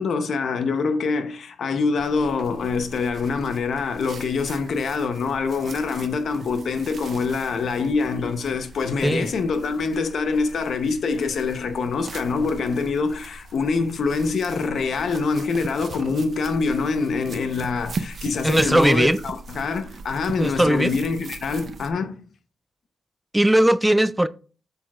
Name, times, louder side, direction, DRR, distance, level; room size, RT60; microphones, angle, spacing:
voice 1, 0.0-22.2, left 4 dB, 75° left, 0.8 m, -25 dB
sound 1, 2.0-21.9, right 3 dB, 60° right, 0.6 m, -40 dB
voice 2, 18.4-19.2 20.4-20.9 23.3-24.3, right 1 dB, 10° right, 0.3 m, -18 dB
6.7 x 5.9 x 2.4 m
cardioid pair, 85°, 0 cm